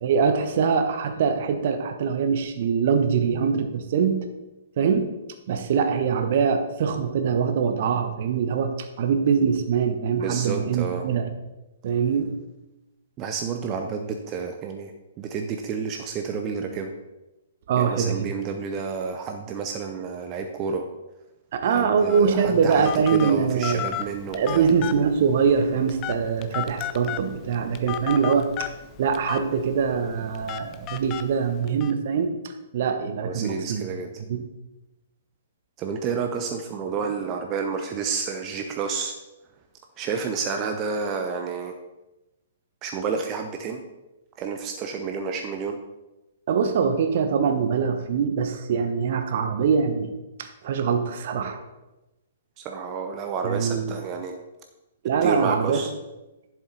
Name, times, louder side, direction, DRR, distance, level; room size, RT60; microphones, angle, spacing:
voice 1, 0.0-4.3 4.8-5.1 5.5-11.3 11.8-12.3 17.7-18.3 21.5-23.9 24.3-28.7 29.0-33.9 34.3-34.5 46.5-51.6 53.4-53.9 55.0-55.8, right 6 dB, 50° right, 8 dB, 1.0 m, -23 dB
voice 2, 10.2-11.1 13.2-14.9 15.2-16.9 17.8-20.9 21.7-24.7 33.2-34.1 35.8-39.1 40.0-41.8 42.8-43.8 44.4-45.8 52.6-54.4 55.2-55.9, right 5 dB, 25° right, 5 dB, 0.8 m, -30 dB
Telephone, 22.1-31.9, left 12 dB, 30° left, 0.5 m, -35 dB
11.0 x 7.5 x 4.0 m, 1.0 s
figure-of-eight pair, 115°, 0 cm